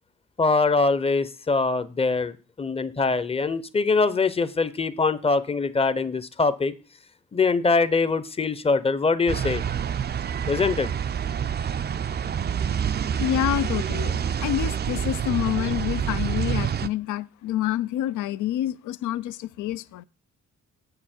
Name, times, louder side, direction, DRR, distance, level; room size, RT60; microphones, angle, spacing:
voice 1, 0.4-6.7 7.3-9.6 10.5-10.9, left 4 dB, 20° left, 0.7 m, -23 dB
sound 1, 9.3-16.9, right 8 dB, 35° right, 0.4 m, -27 dB
voice 2, 13.2-20.0, left 12 dB, 75° left, 0.5 m, -28 dB
7.3 x 6.8 x 4.4 m
supercardioid pair, 55°, 31 cm